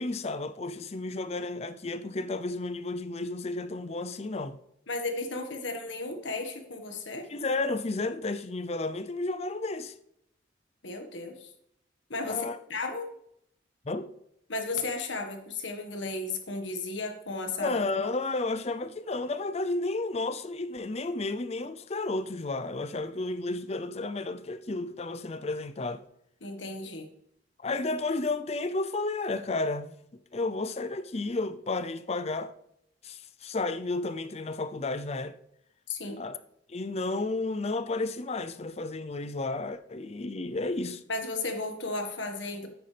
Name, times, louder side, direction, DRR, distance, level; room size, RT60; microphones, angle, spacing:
voice 1, 0.0-4.6 7.3-9.9 12.3-12.6 13.8-14.1 17.6-26.0 27.6-30.0 30.3-32.5 33.0-35.4 36.2-36.4 36.7-41.0, left 2 dB, 35° left, 0.5 m, -32 dB
voice 2, 4.9-7.3 10.8-11.5 12.1-13.1 14.5-17.8 26.4-27.1 35.9-36.2 41.1-42.7, left 3 dB, 80° left, 1.6 m, -34 dB
9.6 x 9.0 x 3.4 m
head